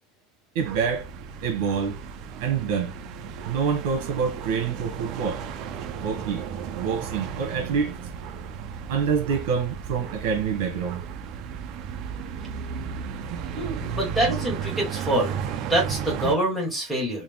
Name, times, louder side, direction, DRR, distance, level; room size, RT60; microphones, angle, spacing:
voice 1, 0.5-1.1 1.4-2.0 2.4-2.9 3.5-5.4 6.0-6.4 6.7-7.9 8.9-11.0, right 6 dB, 70° right, 1.3 m, -26 dB
sound 1, 0.6-16.4, right 7 dB, 40° right, 0.4 m, -34 dB
voice 2, 13.6-15.3 15.7-17.2, right 1 dB, 5° left, 1.4 m, -25 dB
4.0 x 2.3 x 3.4 m
cardioid pair, 175°, 0 cm